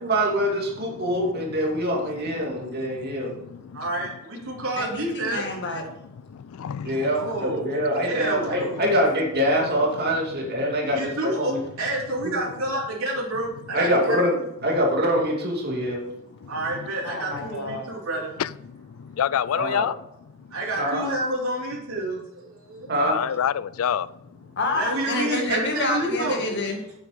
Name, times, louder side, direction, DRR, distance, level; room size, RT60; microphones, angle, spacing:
voice 1, 0.0-3.3 6.8-11.6 12.2-12.4 13.7-14.3 14.6-16.0 19.5-19.9 20.8-21.0 22.9-23.2, equal, 50° right, 2.5 m, -24 dB
voice 2, 2.5-3.9 4.4-4.6 6.3-7.7 8.0-8.1 8.5-8.9 10.1-10.2 16.4-16.9 17.7-17.8 18.4-20.0 20.4-20.5 22.8-24.1, left 9 dB, 75° left, 0.4 m, -30 dB
voice 3, 3.7-5.4 7.1-7.7 8.0-8.7 10.8-14.4 16.5-18.3 20.5-22.9 24.7-26.4, right 1 dB, 80° right, 3.3 m, -29 dB
voice 4, 4.7-5.8 17.0-17.9 24.6-27.0, left 2 dB, 55° left, 2.0 m, -28 dB
9.0 x 7.8 x 5.2 m
head